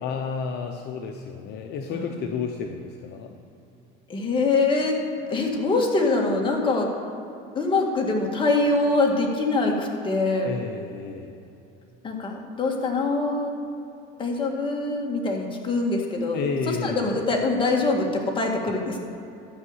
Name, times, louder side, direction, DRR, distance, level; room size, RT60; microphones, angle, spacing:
voice 1, 0.0-3.4 10.4-11.4 16.3-17.2 18.7-18.8, left 5 dB, 55° left, 3 dB, 0.8 m, -31 dB
voice 2, 4.1-5.0 5.3-6.9 7.6-10.6 12.0-13.5 14.2-16.4 16.8-19.0, left 3 dB, 25° left, 0 dB, 1.8 m, -24 dB
13.0 x 5.6 x 8.0 m, 2.7 s
cardioid pair, 130°, 21 cm